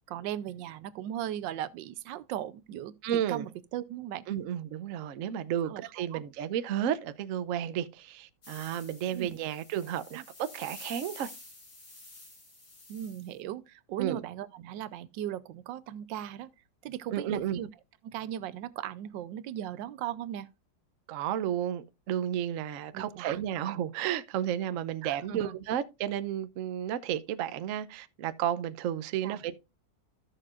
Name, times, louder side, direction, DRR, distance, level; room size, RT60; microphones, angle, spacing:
voice 1, 0.1-2.9 3.3-4.3 5.6-6.2 9.1-9.3 10.1-10.2 12.9-16.5 16.8-17.7 18.0-20.5 22.9-23.4 25.0-25.6 29.2-29.4, right 11 dB, 90° right, 1.3 m, -38 dB
voice 2, 3.0-3.5 4.3-11.3 14.0-14.2 17.1-17.6 21.1-29.6, right 10 dB, 65° right, 0.8 m, -32 dB
sound 1, 8.4-13.3, left 2 dB, 60° left, 3.4 m, -49 dB
14.0 x 6.6 x 2.4 m
omnidirectional pair, 1.9 m